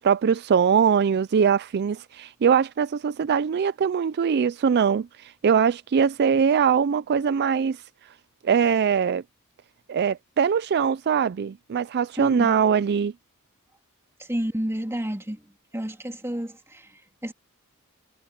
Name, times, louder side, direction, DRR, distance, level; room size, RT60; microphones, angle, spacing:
voice 1, 0.0-8.1 8.4-9.2 9.9-13.1, right 7 dB, 50° right, 0.4 m, -22 dB
voice 2, 12.2-12.5 14.2-15.4 15.7-17.3, equal, 10° right, 2.9 m, -30 dB
head